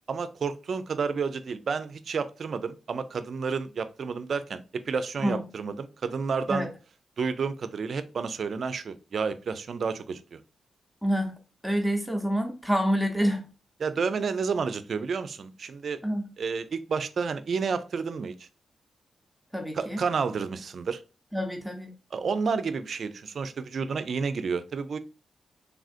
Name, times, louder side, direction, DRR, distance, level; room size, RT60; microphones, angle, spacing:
voice 1, 0.1-6.7 7.2-10.4 13.8-16.0 16.4-18.5 19.8-21.0 22.1-25.0, right 5 dB, 60° right, 12 dB, 0.3 m, -30 dB
voice 2, 11.0-13.5 16.0-16.3 19.5-20.0 21.3-21.9, equal, ahead, 3 dB, 0.6 m, -27 dB
3.4 x 2.4 x 2.4 m, 0.33 s
cardioid pair, 70°, 0 cm